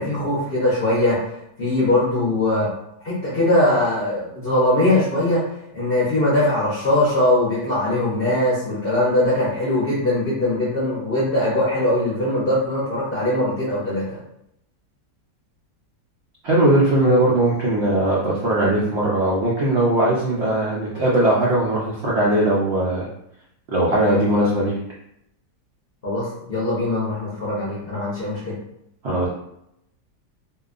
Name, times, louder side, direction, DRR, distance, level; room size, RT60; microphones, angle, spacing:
voice 1, 0.0-1.3 1.6-2.7 3.0-5.4 5.7-14.2 26.0-28.6, left 1 dB, 55° left, -8 dB, 0.6 m, -21 dB
voice 2, 16.4-23.1 23.7-24.7 29.0-29.3, right 1 dB, 80° right, -6 dB, 0.6 m, -19 dB
2.8 x 2.2 x 2.4 m, 0.78 s
omnidirectional pair, 1.8 m